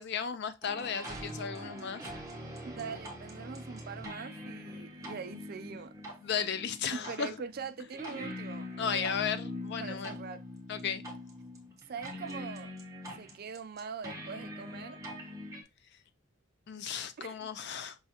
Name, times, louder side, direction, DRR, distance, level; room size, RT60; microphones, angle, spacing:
voice 1, 0.0-2.0 6.2-7.3 8.8-10.2 10.7-11.0 16.7-18.0, left 7 dB, 50° left, 0.4 m, -35 dB
sound 1, 0.6-15.6, left 1 dB, 15° right, 0.8 m, -43 dB
voice 2, 2.6-5.9 6.9-9.3 9.8-10.4 11.9-12.7 13.2-15.0 17.2-17.5, right 5 dB, 45° right, 0.4 m, -42 dB
5.4 x 2.4 x 2.8 m
head